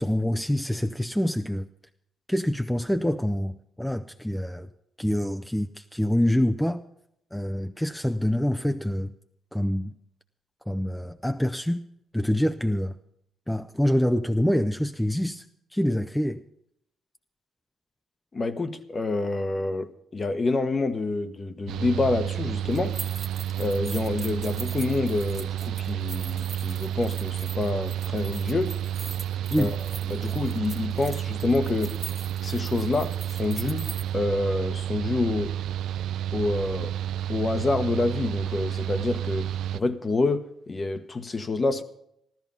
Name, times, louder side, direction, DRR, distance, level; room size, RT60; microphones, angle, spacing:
voice 1, 0.0-1.7 2.3-4.7 5.0-6.8 7.3-9.1 9.5-9.9 10.7-11.8 12.1-13.0 13.5-15.4 15.7-16.4 29.5-29.7, left 1 dB, 5° left, 0.6 m, -26 dB
voice 2, 18.3-22.9 23.6-28.7 29.6-29.8 30.1-31.9 32.4-33.9 34.1-35.5 36.3-36.9 37.3-41.8, left 3 dB, 30° left, 1.1 m, -27 dB
Mechanical fan, 21.7-39.8, right 11 dB, 80° right, 0.4 m, -30 dB
sound 1, 22.7-34.0, right 4 dB, 35° right, 1.3 m, -42 dB
14.0 x 13.5 x 5.4 m
cardioid pair, 90°, 0 cm